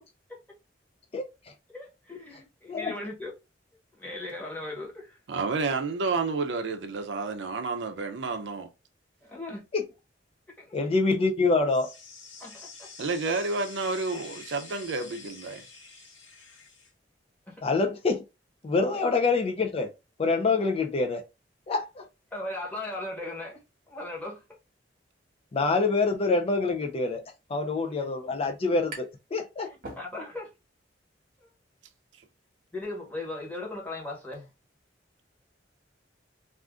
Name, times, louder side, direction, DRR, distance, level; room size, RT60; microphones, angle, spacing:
voice 1, 1.7-3.3 3.9-5.2 9.2-9.6 10.6-10.8 12.4-12.9 17.5-17.6 18.9-19.1 22.3-23.6 23.9-24.6 29.6-30.5 31.4-31.5 32.7-34.5, left 2 dB, 10° left, 1.1 m, -38 dB
voice 2, 5.3-8.7 13.0-15.7, right 3 dB, 70° right, 0.5 m, -30 dB
voice 3, 10.7-11.9 17.6-18.2 18.6-19.9 20.2-21.2 21.7-22.0 25.5-27.2 27.5-29.7, left 3 dB, 35° left, 0.3 m, -26 dB
sound 1, 11.7-16.9, left 4 dB, 80° left, 0.8 m, -47 dB
sound 2, 28.9-29.3 29.6-30.5, right 2 dB, 50° right, 1.1 m, -44 dB
2.4 x 2.4 x 3.5 m
head